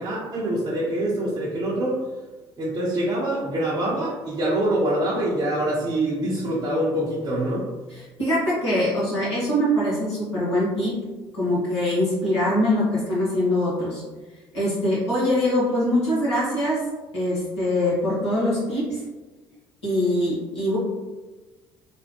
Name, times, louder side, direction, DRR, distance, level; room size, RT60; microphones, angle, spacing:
voice 1, 0.0-2.0 2.6-7.7, right 1 dB, 35° right, -7 dB, 0.7 m, -25 dB
voice 2, 8.2-10.9 11.3-14.0 14.5-16.8 17.1-19.0 19.8-20.8, left 1 dB, 85° left, -9 dB, 1.2 m, -23 dB
3.3 x 2.1 x 2.9 m, 1.2 s
figure-of-eight pair, 55°, 14 cm